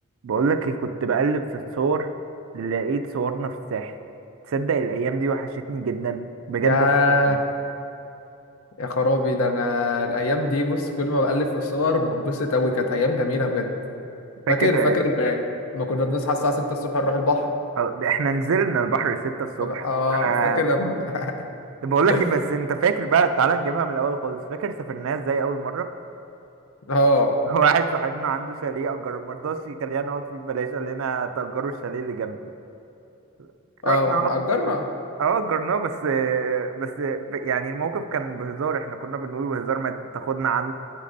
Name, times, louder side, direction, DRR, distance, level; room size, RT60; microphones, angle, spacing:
voice 1, 0.2-2.1 2.5-4.0 4.5-6.9 7.3-7.4 14.5-15.0 17.8-20.6 21.8-25.9 27.5-32.4 33.4-33.5 33.8-34.3 35.2-40.7, right 5 dB, 65° right, 8 dB, 0.4 m, -25 dB
voice 2, 6.6-7.4 8.8-13.7 14.5-15.4 15.7-17.5 19.6-21.3 22.1-22.3 26.9-27.4 33.8-34.9, left 2 dB, 75° left, 4 dB, 0.7 m, -22 dB
9.1 x 8.3 x 2.6 m, 2.8 s
head